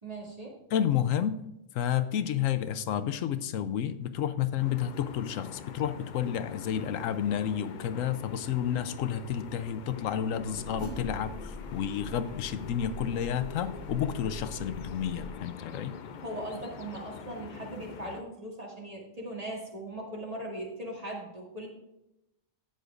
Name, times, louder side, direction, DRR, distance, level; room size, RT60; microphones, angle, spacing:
voice 1, 0.0-0.6 16.2-21.7, right 1 dB, 30° right, -2 dB, 2.2 m, -39 dB
voice 2, 0.7-1.4 1.7-15.9, left 9 dB, 85° left, 12 dB, 1.0 m, -30 dB
sound 1, 4.6-18.2, left 7 dB, 65° left, 0.4 m, -45 dB
sound 2, 8.4-15.3, right 1 dB, 45° right, 1.4 m, -44 dB
13.0 x 8.9 x 2.5 m, 0.88 s
omnidirectional pair, 1.3 m